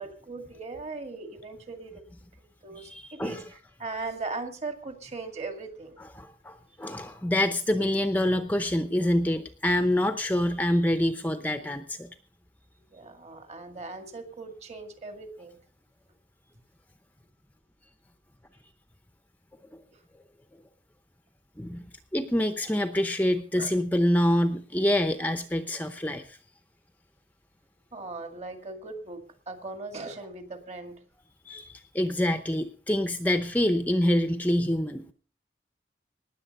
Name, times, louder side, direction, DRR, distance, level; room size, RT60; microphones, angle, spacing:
voice 1, 0.0-2.0 2.4-6.0 11.6-11.7 12.9-15.6 23.6-23.7 27.9-31.0, right 3 dB, 35° right, 6 dB, 2.1 m, -39 dB
voice 2, 2.8-3.4 6.2-12.1 21.6-21.8 22.1-26.4 31.5-35.1, left 1 dB, 10° left, 9 dB, 0.7 m, -26 dB
19.5 x 7.6 x 5.4 m, 0.42 s
head